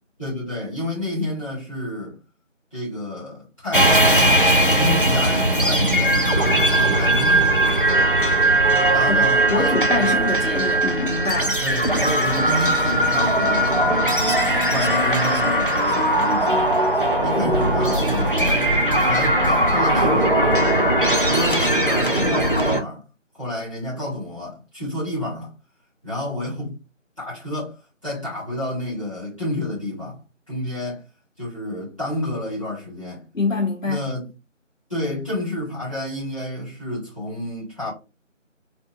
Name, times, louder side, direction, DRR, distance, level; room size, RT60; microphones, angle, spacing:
voice 1, 0.2-2.2 2.7-7.5 8.9-10.3 11.6-14.1 14.7-16.8 17.2-18.6 19.0-20.4 21.0-23.0 23.3-25.5 26.0-26.7 27.2-30.2 30.5-31.0 31.4-33.2 33.8-34.3 34.9-37.9, left 1 dB, 25° left, 2.1 m, -29 dB
sound 1, 3.7-22.8, right 1 dB, 45° left, 0.5 m, -19 dB
voice 2, 9.0-11.6 33.3-34.0, left 3 dB, 80° left, 1.3 m, -24 dB
sound 2, 13.3-21.8, right 1 dB, 50° right, 0.5 m, -32 dB
4.2 x 2.7 x 2.4 m
figure-of-eight pair, 175°, 38 cm